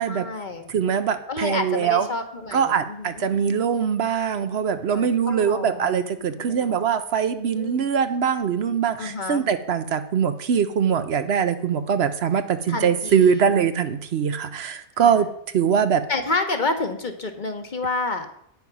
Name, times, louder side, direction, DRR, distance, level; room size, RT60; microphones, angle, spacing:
voice 1, 0.1-0.7 1.3-3.2 4.9-5.9 6.4-6.8 7.5-7.9 9.0-9.5 12.7-13.5 15.0-15.2 16.1-18.3, left 3 dB, 45° left, 6 dB, 1.2 m, -29 dB
voice 2, 0.7-2.1 2.5-16.1, right 7 dB, 65° right, 10 dB, 0.9 m, -22 dB
9.4 x 6.9 x 5.9 m, 0.72 s
omnidirectional pair, 1.2 m